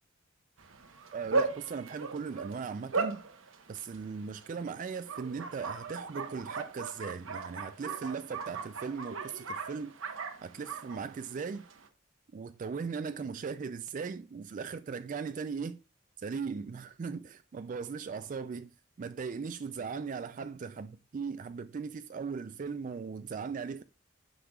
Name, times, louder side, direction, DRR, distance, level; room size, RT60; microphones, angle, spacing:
Bark, 0.6-11.9, right 3 dB, 85° right, 1.0 m, -38 dB
voice 1, 1.1-3.2 3.7-9.9 10.4-11.7 12.3-15.8 16.2-18.7 19.0-20.9 21.1-23.8, right 5 dB, 40° right, 0.3 m, -38 dB
9.9 x 6.3 x 2.3 m
head